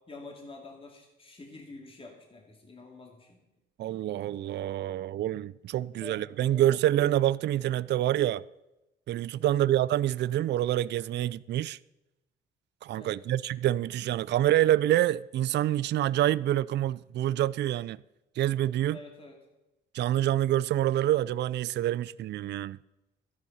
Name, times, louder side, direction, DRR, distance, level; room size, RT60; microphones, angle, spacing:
voice 1, 0.1-3.4 6.0-6.2 6.5-6.7 9.4-9.7 12.9-13.2 18.9-19.4, left 2 dB, 25° left, 2.5 m, -47 dB
voice 2, 3.8-8.4 9.1-11.8 12.8-18.0 18.4-19.0 19.9-22.8, right 13 dB, 60° right, 0.4 m, -27 dB
13.5 x 11.0 x 5.6 m
cardioid pair, 90°, 20 cm